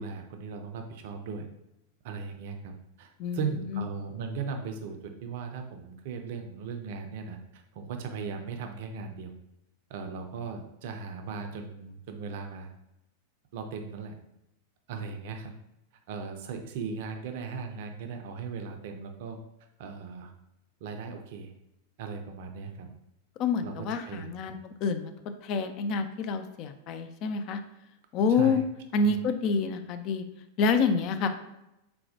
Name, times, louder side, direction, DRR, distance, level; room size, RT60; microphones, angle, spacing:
voice 1, 0.0-1.5 2.0-9.3 9.9-12.7 13.5-14.2 14.9-15.5 16.1-19.4 19.8-20.3 20.8-21.5 22.0-22.9 23.6-24.6 28.3-28.6 28.9-29.2, right 5 dB, 50° right, 5 dB, 0.4 m, -38 dB
voice 2, 3.2-3.8 23.4-25.1 25.4-27.6 28.1-28.6 28.9-30.2 30.6-31.3, left 4 dB, 40° left, 8 dB, 0.3 m, -27 dB
4.1 x 2.1 x 2.8 m, 0.88 s
figure-of-eight pair, 90°, 0 cm